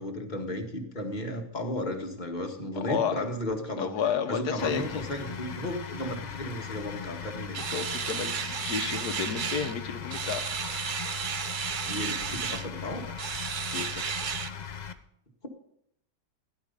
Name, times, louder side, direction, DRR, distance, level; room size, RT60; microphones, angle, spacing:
voice 1, 0.0-3.9 4.3-7.6 11.9-13.1, left 1 dB, 25° left, 3 dB, 1.8 m, -34 dB
voice 2, 2.8-3.2 3.8-5.0 7.7-10.4 13.6-14.0, left 7 dB, 70° left, 9 dB, 1.6 m, -31 dB
sound 1, 4.6-14.9, left 7 dB, 50° left, 0.5 m, -39 dB
sound 2, 7.5-9.8 10.1-12.7 13.2-14.5, right 7 dB, 85° right, 0.4 m, -33 dB
16.5 x 11.0 x 5.3 m, 0.75 s
omnidirectional pair, 1.8 m